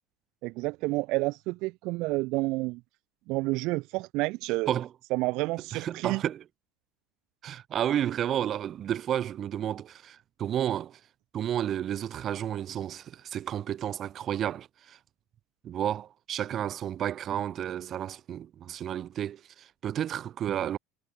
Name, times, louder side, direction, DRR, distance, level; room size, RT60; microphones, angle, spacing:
voice 1, 0.4-2.8 3.3-4.7 5.1-6.2, right 23 dB, 60° right, 4.8 m, -29 dB
voice 2, 5.7-6.4 7.4-11.0 11.3-15.0 15.6-20.8, right 10 dB, 40° right, 5.7 m, -31 dB
supercardioid pair, 100°, 0 cm